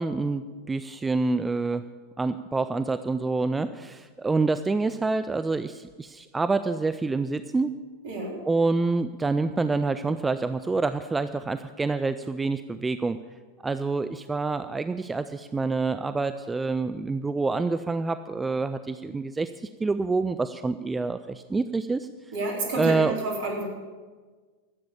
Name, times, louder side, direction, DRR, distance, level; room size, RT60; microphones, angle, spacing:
voice 1, 0.0-1.8 2.2-7.7 8.4-13.2 13.6-22.1 22.8-23.2, right 3 dB, 10° right, 11 dB, 0.4 m, -27 dB
voice 2, 8.0-8.4 22.3-23.6, right 3 dB, 55° right, -1 dB, 3.7 m, -30 dB
14.0 x 7.8 x 7.3 m, 1.4 s
figure-of-eight pair, 90°, 0 cm